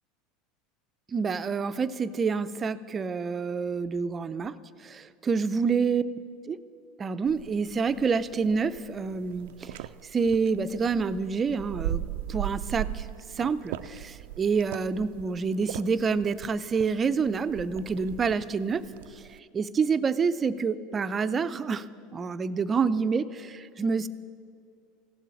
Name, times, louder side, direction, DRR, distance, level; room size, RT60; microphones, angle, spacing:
voice 1, 1.1-4.5 4.8-6.0 6.5-6.6 7.0-9.8 10.1-12.0 12.3-13.1 13.4-18.8 19.5-21.9 22.1-24.1, right 5 dB, 25° right, 13 dB, 0.5 m, -27 dB
sound 1, 7.3-19.4, right 12 dB, 80° right, 0.4 m, -39 dB
15.5 x 7.5 x 9.5 m, 2.4 s
supercardioid pair, 110°, 0 cm